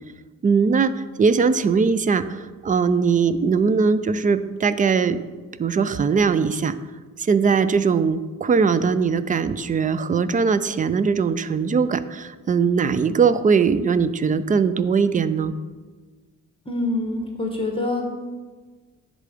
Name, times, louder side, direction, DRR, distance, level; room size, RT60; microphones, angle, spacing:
voice 1, 0.4-5.2 5.6-6.7 7.2-15.5, right 5 dB, 25° right, 14 dB, 0.4 m, -20 dB
voice 2, 16.6-18.0, left 2 dB, 20° left, 2 dB, 1.2 m, -25 dB
10.0 x 3.8 x 5.0 m, 1.4 s
cardioid pair, 90°, 30 cm